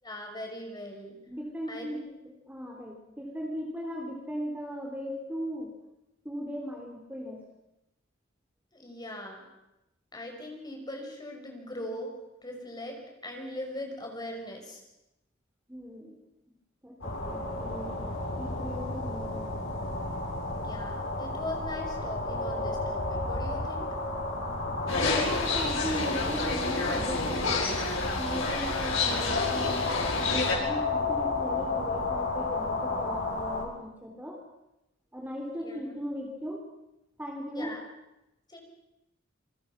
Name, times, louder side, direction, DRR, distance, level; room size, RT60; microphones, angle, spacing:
voice 1, 0.0-1.2 1.7-2.2 8.7-9.5 10.1-12.2 12.4-14.8 20.6-23.9 35.6-36.0 37.5-37.8 38.5-38.6, left 1 dB, 20° left, 2 dB, 5.8 m, -40 dB
voice 2, 1.3-2.0 2.2-5.7 6.2-7.5 15.7-16.1 16.8-19.5 24.9-27.8 28.2-34.4 35.1-36.6 37.2-37.8, equal, 10° right, 0 dB, 3.6 m, -37 dB
sound 1, 17.0-33.6, left 2 dB, 70° left, 6.8 m, -32 dB
sound 2, 24.9-30.5, left 3 dB, 90° left, 5.5 m, -29 dB
27.5 x 24.0 x 6.0 m, 0.92 s
head